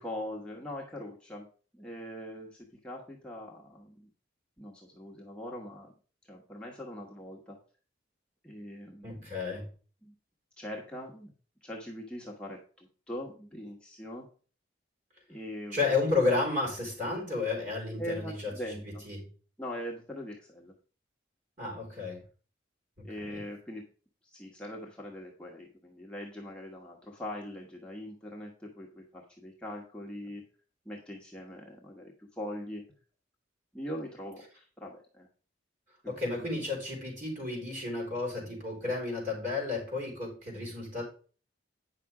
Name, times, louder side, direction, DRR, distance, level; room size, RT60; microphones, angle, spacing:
voice 1, 0.0-1.5 1.7-4.1 4.6-5.9 6.2-7.6 8.4-9.2 10.0-10.1 10.6-11.3 11.6-14.3 15.3-15.8 18.0-19.0 19.6-20.7 23.0-23.8 24.2-30.4 30.8-32.8 33.7-35.3 36.0-36.6, left 1 dB, 5° left, -3 dB, 1.1 m, -42 dB
voice 2, 9.0-9.7 15.7-19.3 21.6-22.2 23.0-23.4 36.1-41.0, left 3 dB, 40° right, 0 dB, 4.4 m, -32 dB
9.2 x 5.8 x 4.8 m, 0.39 s
head